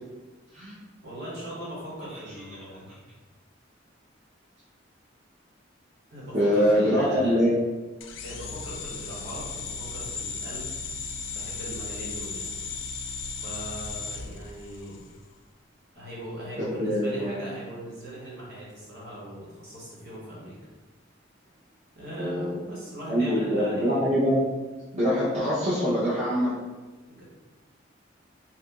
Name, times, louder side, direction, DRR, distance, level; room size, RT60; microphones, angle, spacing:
voice 1, 1.0-2.9 6.1-7.4 8.2-10.8 11.3-12.6 13.4-15.0 15.9-20.6 21.9-24.0 27.1-27.2, right 1 dB, 55° right, -7 dB, 1.3 m, -39 dB
voice 2, 6.3-7.5 16.8-17.5 22.2-22.6 23.1-24.4 24.9-26.6, equal, 35° right, -10 dB, 0.7 m, -24 dB
sound 1, 8.0-15.1, left 4 dB, 70° left, 0.3 m, -36 dB
2.8 x 2.4 x 3.5 m, 1.2 s
head